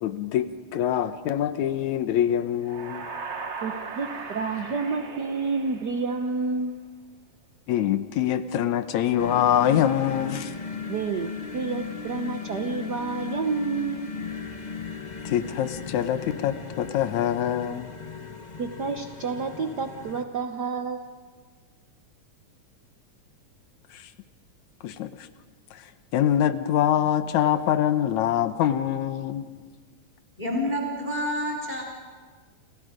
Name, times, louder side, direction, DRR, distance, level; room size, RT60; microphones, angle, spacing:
voice 1, 0.0-3.1 7.7-10.5 15.3-17.9 23.9-24.0 24.8-25.3 25.7-25.8 26.1-29.5, left 10 dB, 75° left, 12 dB, 2.2 m, -24 dB
sound 1, 2.6-6.4, right 5 dB, 55° right, 0.7 m, -38 dB
voice 2, 3.6-6.8 10.9-14.1 18.6-21.1, right 4 dB, 85° right, 6 dB, 0.9 m, -29 dB
sound 2, 9.2-20.2, left 5 dB, 40° left, 0.6 m, -37 dB
voice 3, 30.4-31.8, left 1 dB, 15° left, 1 dB, 3.5 m, -28 dB
29.5 x 29.0 x 5.1 m, 1.5 s
omnidirectional pair, 3.5 m